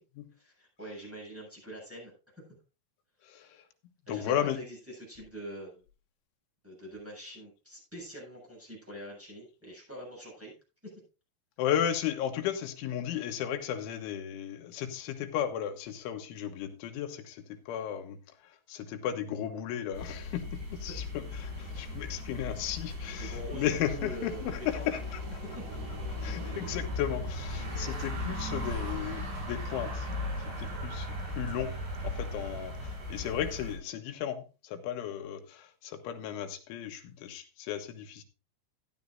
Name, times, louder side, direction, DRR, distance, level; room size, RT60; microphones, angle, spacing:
voice 1, 0.4-2.1 3.2-3.6 4.1-5.8 6.6-10.5 10.8-10.9 23.1-24.9 25.5-25.6, right 1 dB, 5° right, 7.5 m, -44 dB
voice 2, 3.3-3.6 4.1-4.6 11.6-18.2 18.7-25.8 26.2-30.1 30.5-38.2, left 10 dB, 85° left, 3.7 m, -35 dB
sound 1, 19.9-33.8, left 1 dB, 80° right, 9.8 m, -37 dB
14.5 x 11.0 x 2.6 m
omnidirectional pair, 5.3 m